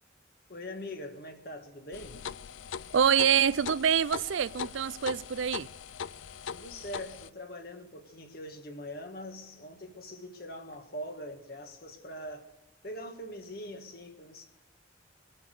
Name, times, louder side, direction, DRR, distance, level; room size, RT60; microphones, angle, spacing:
voice 1, 0.5-2.2 6.4-12.5 12.8-14.5, equal, 50° left, 1.7 m, -42 dB
sound 1, 1.9-7.3, left 7 dB, 85° left, 0.5 m, -40 dB
voice 2, 2.9-5.7, right 8 dB, 80° right, 0.4 m, -26 dB
22.5 x 8.6 x 6.6 m
head